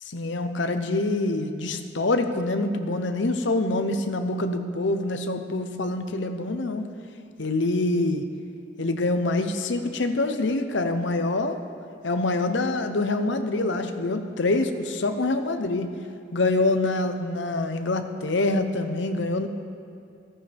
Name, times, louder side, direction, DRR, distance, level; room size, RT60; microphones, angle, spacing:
voice 1, 0.1-6.8 7.4-8.2 8.8-11.6 12.0-15.9 16.3-19.5, left 2 dB, 65° left, 7 dB, 0.8 m, -25 dB
14.5 x 14.0 x 3.5 m, 2.5 s
head